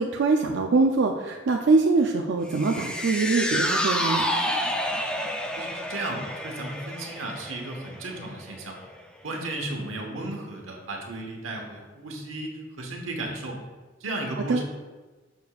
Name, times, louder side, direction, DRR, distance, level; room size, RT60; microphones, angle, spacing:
voice 1, 0.0-4.3 14.5-14.6, right 3 dB, 65° right, 2 dB, 0.4 m, -23 dB
sound 1, 2.5-9.0 9.3-9.4, equal, 5° left, 0.4 m, -29 dB
voice 2, 5.4-8.8 9.2-13.6 14.0-14.6, right 2 dB, 85° right, 1 dB, 1.1 m, -34 dB
6.6 x 6.6 x 2.3 m, 1.3 s
head